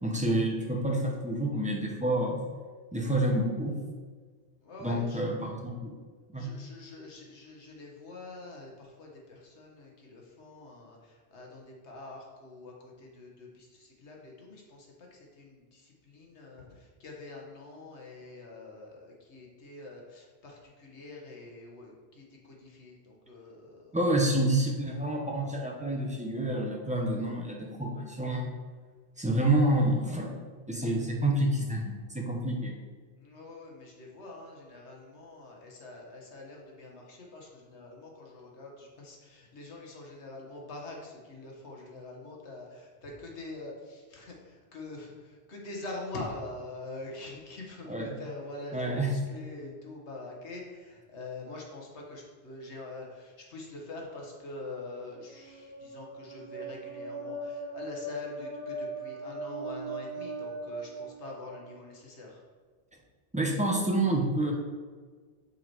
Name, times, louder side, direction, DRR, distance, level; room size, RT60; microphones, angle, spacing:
voice 1, 0.0-2.4 2.9-3.8 4.8-5.9 6.3-6.5 23.9-28.5 29.2-30.3 30.7-32.7 47.9-48.1 48.7-49.1 63.3-64.5, right 1 dB, 5° right, -1 dB, 0.8 m, -28 dB
voice 2, 4.6-5.2 6.3-24.0 33.2-62.4, left 2 dB, 90° left, -1 dB, 1.6 m, -45 dB
sound 1, 55.0-61.8, right 2 dB, 30° right, 1.6 m, -39 dB
5.8 x 4.4 x 4.6 m, 1.5 s
omnidirectional pair, 1.1 m